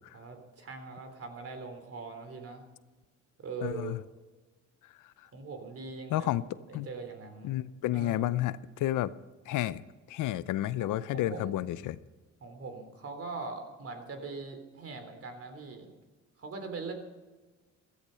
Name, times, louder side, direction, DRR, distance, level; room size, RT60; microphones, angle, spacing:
voice 1, 0.1-2.6 3.4-4.0 5.3-6.3 6.7-7.5 7.9-8.3 10.8-11.5 12.4-15.9 16.4-16.9, right 4 dB, 50° right, 6 dB, 3.4 m, -41 dB
voice 2, 3.6-4.0 6.1-6.4 6.7-6.9 7.4-9.1 9.5-9.8 10.1-12.0, left 14 dB, 85° left, 17 dB, 0.7 m, -31 dB
15.0 x 14.0 x 5.6 m, 1.2 s
cardioid pair, 90°, 30 cm